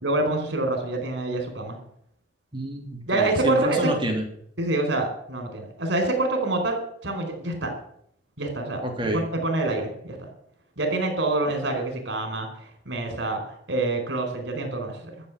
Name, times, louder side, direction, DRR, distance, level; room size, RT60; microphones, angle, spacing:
voice 1, 0.0-1.8 3.1-3.9 4.6-7.7 8.4-8.8 9.1-10.3 10.8-12.5 12.9-13.4 13.7-15.0, right 2 dB, 65° right, 5 dB, 4.5 m, -26 dB
voice 2, 2.5-4.2 8.8-9.2, right 1 dB, 25° right, 2 dB, 3.1 m, -28 dB
14.0 x 7.3 x 9.9 m, 0.67 s
head